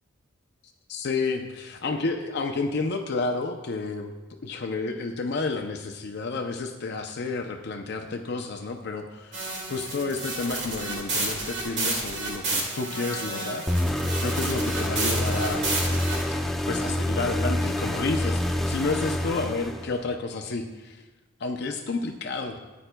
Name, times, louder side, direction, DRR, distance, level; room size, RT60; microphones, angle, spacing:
voice 1, 0.9-4.2 4.4-15.7 16.7-21.0 21.4-22.6, left 3 dB, 55° left, 4 dB, 0.5 m, -30 dB
sound 1, 9.3-16.2, right 2 dB, 60° right, 2.0 m, -31 dB
sound 2, 13.7-20.1, left 1 dB, ahead, 0.5 m, -27 dB
14.0 x 9.1 x 2.2 m, 1.2 s
head